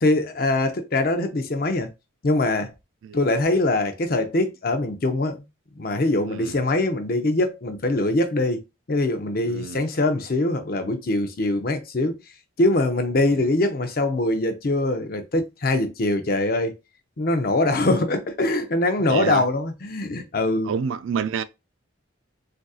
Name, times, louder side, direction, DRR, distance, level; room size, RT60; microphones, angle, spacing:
voice 1, 0.0-1.9 2.2-2.7 3.1-5.4 5.8-8.6 8.9-12.2 12.6-16.7 17.2-20.7, left 2 dB, 45° left, 0.5 m, -23 dB
voice 2, 9.4-9.8 13.3-13.5 19.1-19.4 20.6-21.4, right 6 dB, 75° right, 0.3 m, -28 dB
3.9 x 2.5 x 2.3 m
head